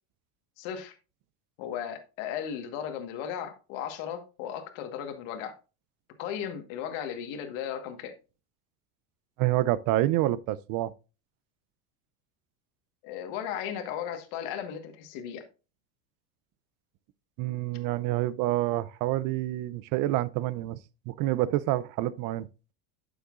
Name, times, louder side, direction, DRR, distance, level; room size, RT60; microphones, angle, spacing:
voice 1, 0.6-1.0 1.6-5.6 6.2-8.1 13.0-15.4, left 9 dB, 70° left, 1.5 m, -36 dB
voice 2, 9.4-10.9 17.4-20.8 21.1-22.5, right 15 dB, 50° right, 0.5 m, -27 dB
9.2 x 7.0 x 2.4 m
supercardioid pair, 120°, 41 cm